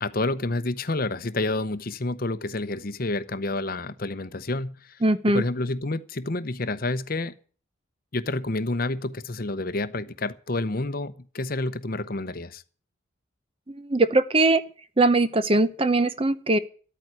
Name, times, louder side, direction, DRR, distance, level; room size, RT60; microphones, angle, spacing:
voice 1, 0.0-5.0 5.3-7.3 8.1-12.6, left 2 dB, 45° left, 0.8 m, -29 dB
voice 2, 5.0-5.4 13.7-14.6 15.0-16.6, right 2 dB, 25° right, 0.7 m, -21 dB
13.0 x 9.0 x 9.7 m
head